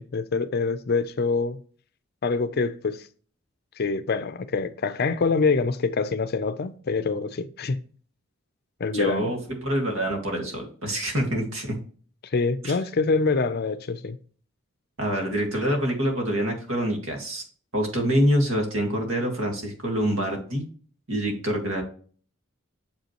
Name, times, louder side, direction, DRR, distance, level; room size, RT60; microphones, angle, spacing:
voice 1, 0.0-1.6 2.2-3.0 3.8-7.8 8.8-9.3 12.3-14.2, left 4 dB, 50° left, 0.5 m, -25 dB
voice 2, 8.9-9.4 9.6-11.7 12.6-12.8 15.0-17.4 17.7-20.6 21.1-21.8, equal, 70° right, 2.0 m, -26 dB
6.9 x 5.4 x 3.0 m
head